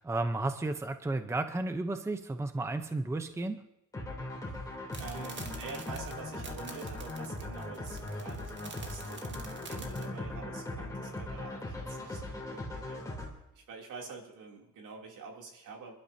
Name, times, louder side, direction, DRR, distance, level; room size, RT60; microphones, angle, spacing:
voice 1, 0.0-3.6, right 2 dB, 10° right, 8 dB, 0.7 m, -33 dB
sound 1, 3.9-13.3, left 1 dB, 10° left, 3.1 m, -39 dB
voice 2, 4.5-13.2 13.5-15.9, right 4 dB, 75° right, 0 dB, 3.0 m, -47 dB
sound 2, 4.9-10.1, right 4 dB, 35° right, 1.8 m, -48 dB
28.5 x 12.0 x 2.8 m, 0.86 s
cardioid pair, 160°, 31 cm